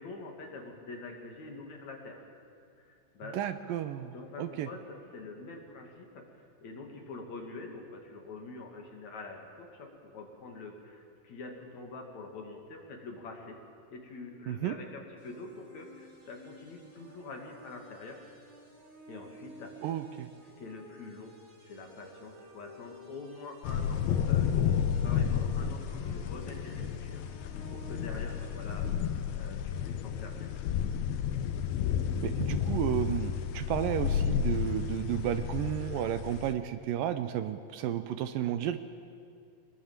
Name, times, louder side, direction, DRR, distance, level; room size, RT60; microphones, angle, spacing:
voice 1, 0.0-2.2 2.8-3.4 4.0-6.2 6.6-13.6 13.9-18.2 19.1-19.9 20.4-21.4 21.7-28.9 29.3-30.5, left 3 dB, 55° left, 1 dB, 3.3 m, -45 dB
voice 2, 3.3-4.1 4.4-4.7 14.5-14.8 19.8-20.3 32.2-38.8, right 11 dB, 80° right, 10 dB, 2.3 m, -32 dB
sound 1, 15.2-28.9, right 2 dB, 50° right, 6.7 m, -53 dB
sound 2, 23.6-36.5, left 8 dB, 85° left, 2.8 m, -31 dB
24.0 x 20.5 x 7.4 m, 2.4 s
omnidirectional pair, 4.2 m